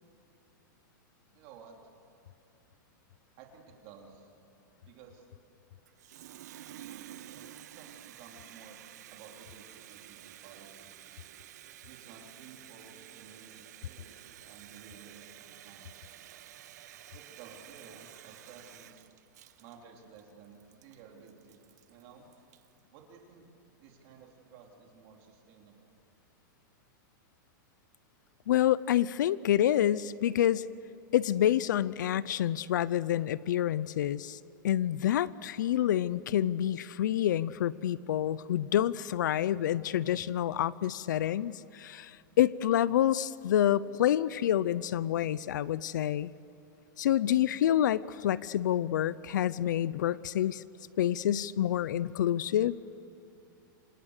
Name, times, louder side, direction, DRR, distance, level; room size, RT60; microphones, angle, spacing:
voice 1, 1.3-1.8 3.4-4.3 4.8-5.3 7.2-8.8 9.1-10.9 11.9-15.9 17.1-19.1 19.6-21.6 21.9-22.3 22.9-23.5 23.8-25.9, right 6 dB, 35° right, 1 dB, 3.6 m, -54 dB
Water tap faucet, 5.9-22.8, right 12 dB, 55° right, 1.0 m, -51 dB
voice 2, 28.5-30.7 31.1-34.4 34.6-46.3 47.0-50.6 51.0-52.7, left 11 dB, 65° left, 19 dB, 0.6 m, -28 dB
28.0 x 26.0 x 6.7 m, 2.8 s
supercardioid pair, 175°, 11 cm